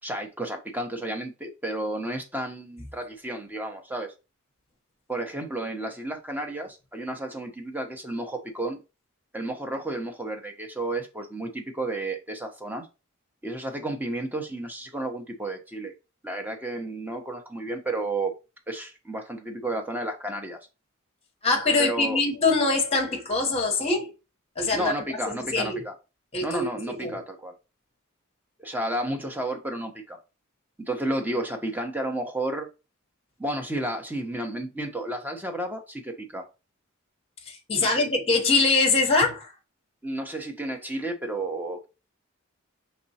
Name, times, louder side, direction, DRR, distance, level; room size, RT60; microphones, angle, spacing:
voice 1, 0.0-4.1 5.1-8.8 9.3-12.9 13.4-15.9 16.2-18.4 18.7-20.6 21.8-22.2 24.7-25.9 26.4-27.5 28.6-30.2 30.8-32.7 33.4-36.5 37.8-38.0 40.0-41.8, right 1 dB, 10° right, 0.8 m, -32 dB
voice 2, 21.4-24.1 24.6-24.9 25.3-25.8 26.3-27.2 37.5-39.5, left 3 dB, 30° left, 1.0 m, -23 dB
5.1 x 3.1 x 2.8 m
head